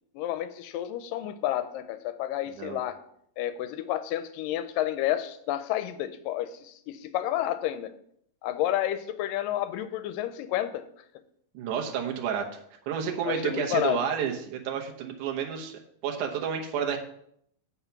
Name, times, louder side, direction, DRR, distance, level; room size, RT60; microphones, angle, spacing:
voice 1, 0.1-3.0 3.4-7.9 8.4-10.8 13.2-14.0, left 12 dB, 90° left, 11 dB, 2.3 m, -30 dB
voice 2, 11.5-12.5 12.9-15.7 16.0-17.0, right 7 dB, 70° right, 2 dB, 2.4 m, -30 dB
8.1 x 5.7 x 5.9 m, 0.69 s
omnidirectional pair, 3.9 m